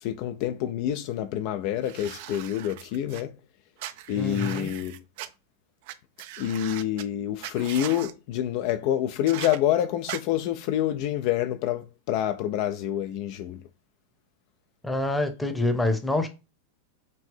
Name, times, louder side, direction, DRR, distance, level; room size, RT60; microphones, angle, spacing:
voice 1, 0.0-3.4 4.1-5.0 6.4-13.6, left 11 dB, 45° left, 0.3 m, -27 dB
sound 1, 1.8-3.2 3.8-5.3 5.9-6.0 6.2-7.0 7.4-8.1 9.3-9.6 10.1-10.2, right 13 dB, 50° right, 0.4 m, -39 dB
voice 2, 4.2-4.7 14.8-16.3, left 2 dB, 5° left, 0.8 m, -26 dB
5.2 x 2.6 x 3.4 m
figure-of-eight pair, 90°, 0 cm